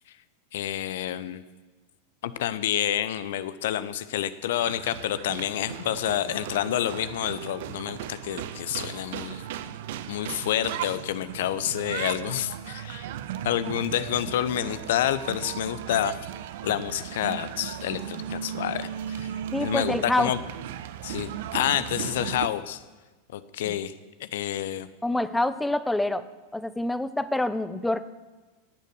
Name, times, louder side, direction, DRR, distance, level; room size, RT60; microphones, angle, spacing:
voice 1, 0.5-1.4 2.2-9.4 10.1-13.1 13.4-16.2 16.6-19.3 19.6-20.4 21.0-22.8 23.3-23.9 24.2-24.9, left 11 dB, 55° left, 14 dB, 0.6 m, -28 dB
sound 1, 4.6-22.5, right 10 dB, 55° right, 0.6 m, -36 dB
voice 2, 19.5-20.3 25.0-26.2 26.5-28.0, left 1 dB, 5° left, 14 dB, 0.6 m, -26 dB
14.5 x 9.1 x 6.3 m, 1.2 s
figure-of-eight pair, 90°, 0 cm